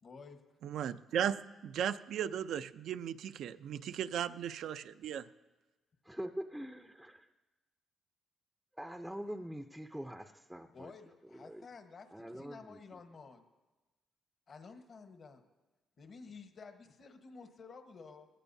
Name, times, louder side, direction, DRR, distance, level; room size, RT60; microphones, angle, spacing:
voice 1, 0.0-0.4 10.7-13.4 14.5-15.4 16.0-18.3, left 4 dB, 50° left, 6 dB, 1.2 m, -52 dB
voice 2, 0.6-5.2, right 9 dB, 75° right, 11 dB, 0.5 m, -36 dB
voice 3, 6.0-7.3 8.8-10.9 11.3-11.7 12.1-13.0, equal, 5° right, 5 dB, 0.6 m, -44 dB
21.0 x 16.5 x 2.7 m, 1.2 s
cardioid pair, 90°, 0 cm